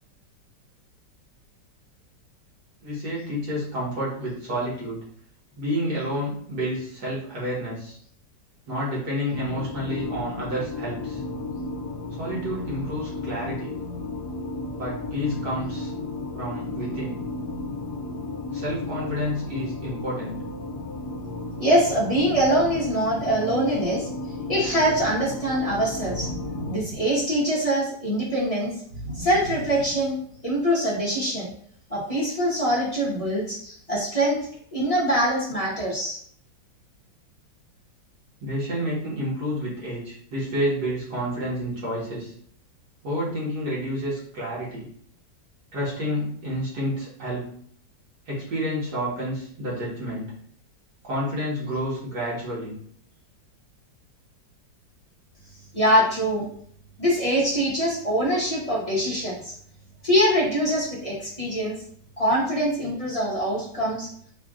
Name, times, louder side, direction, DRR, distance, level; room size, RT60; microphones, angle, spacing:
voice 1, 2.8-5.0 5.5-8.0 8.7-11.2 12.2-13.7 14.8-15.9 16.3-17.2 18.5-20.4 38.4-42.3 43.0-44.9 45.7-47.5 48.3-50.3 51.0-52.8, equal, 60° right, -7 dB, 2.0 m, -29 dB
sound 1, 9.3-26.8, left 2 dB, 70° left, 1.1 m, -34 dB
voice 2, 21.6-24.1 24.5-26.3 26.7-28.8 29.1-30.2 30.4-31.5 31.9-34.4 34.7-36.2 55.7-56.4 57.0-59.5 60.0-61.8 62.2-64.1, equal, 30° left, -6 dB, 0.7 m, -23 dB
sound 2, 26.0-27.8 28.9-30.6, right 1 dB, 85° right, 2.1 m, -37 dB
5.5 x 2.5 x 2.4 m, 0.62 s
omnidirectional pair, 2.0 m